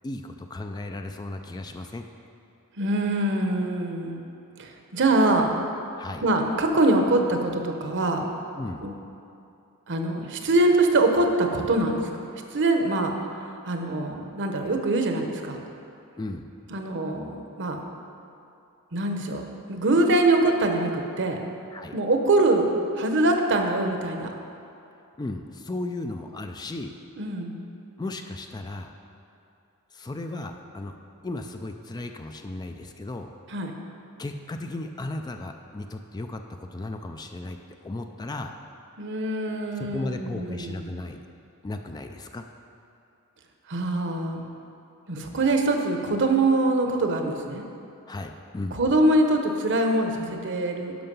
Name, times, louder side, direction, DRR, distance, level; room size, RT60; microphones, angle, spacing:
voice 1, 0.0-2.0 6.0-6.2 8.6-8.8 16.2-16.5 21.7-21.9 25.2-26.9 28.0-28.9 29.9-31.0 31.2-33.3 34.2-37.6 37.8-38.5 39.8-41.2 41.6-42.5 48.1-48.8, left 2 dB, 20° left, 5 dB, 0.3 m, -35 dB
voice 2, 2.8-4.3 4.6-5.5 6.2-8.2 8.8-8.9 9.9-12.0 12.5-13.1 13.7-15.6 16.7-17.8 18.9-19.4 19.7-21.4 21.9-22.7 23.0-24.3 27.2-27.6 33.5-33.7 39.0-41.0 43.7-44.5 45.1-47.6 48.7-50.9, right 2 dB, 55° right, 4 dB, 0.9 m, -23 dB
11.0 x 5.6 x 5.4 m, 2.7 s
head